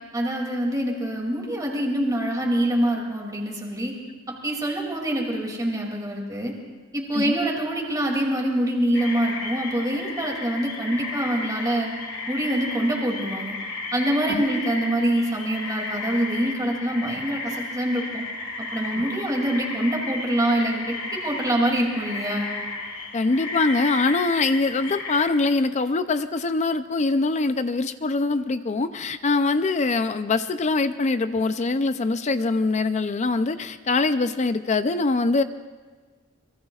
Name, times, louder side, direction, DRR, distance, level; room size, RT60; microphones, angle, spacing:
voice 1, 0.1-3.9 4.3-6.5 6.9-11.9 12.3-13.6 13.9-18.2 18.7-22.5, right 1 dB, 20° right, -1 dB, 2.7 m, -25 dB
sound 1, 8.9-25.3, left 2 dB, 65° left, 2.6 m, -33 dB
voice 2, 23.1-35.4, left 3 dB, 35° left, 11 dB, 0.5 m, -23 dB
25.5 x 22.5 x 2.4 m, 1.4 s
head